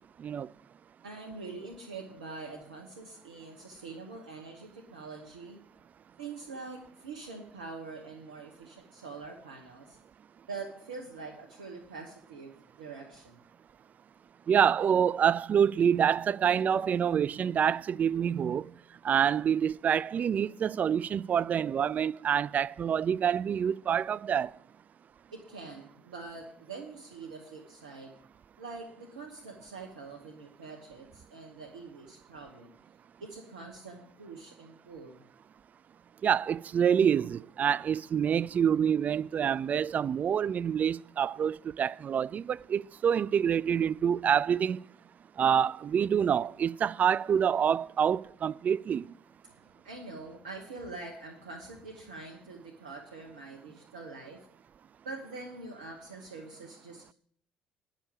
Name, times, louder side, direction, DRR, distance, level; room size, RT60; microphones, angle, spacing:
voice 1, 1.0-5.6 6.2-10.0 10.5-13.4 25.3-28.1 28.6-32.7 33.2-35.2 49.4-54.4 55.0-57.1, right 3 dB, 90° right, 1.3 m, -44 dB
voice 2, 14.5-18.7 19.0-24.5 36.2-44.8 45.4-49.1, right 8 dB, 45° right, 0.4 m, -27 dB
10.0 x 6.5 x 8.5 m
hypercardioid pair, 60°, 4 cm